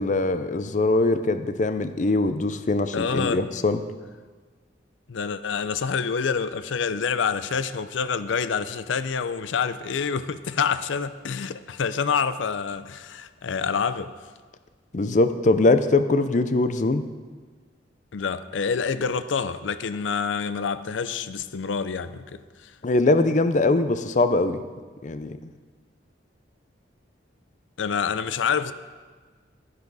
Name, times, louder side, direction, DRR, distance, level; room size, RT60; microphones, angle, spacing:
voice 1, 0.0-3.8 14.9-17.1 22.8-24.6 25.0-25.4, left 2 dB, 40° left, 0.5 m, -22 dB
voice 2, 2.9-3.4 5.1-14.1 18.1-22.7 27.8-28.7, left 6 dB, 90° left, 0.5 m, -27 dB
10.5 x 10.5 x 4.0 m
head